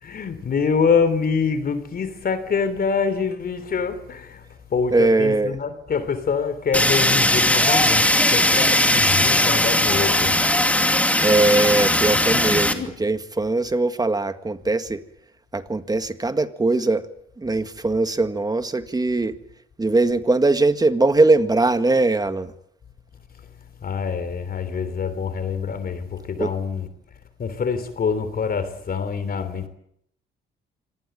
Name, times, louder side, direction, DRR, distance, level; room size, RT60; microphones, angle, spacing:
voice 1, 0.0-4.4 4.7-10.4 12.3-13.0 23.8-26.9 27.4-29.7, left 5 dB, 50° left, 3.3 m, -25 dB
voice 2, 4.9-5.6 11.2-15.0 15.5-17.1 17.4-19.4 19.8-22.5 26.4-26.5, right 2 dB, 20° right, 1.8 m, -20 dB
Fire, 6.7-12.7, left 1 dB, 5° left, 2.6 m, -19 dB
25.0 x 19.0 x 9.0 m
cardioid pair, 90°, 20 cm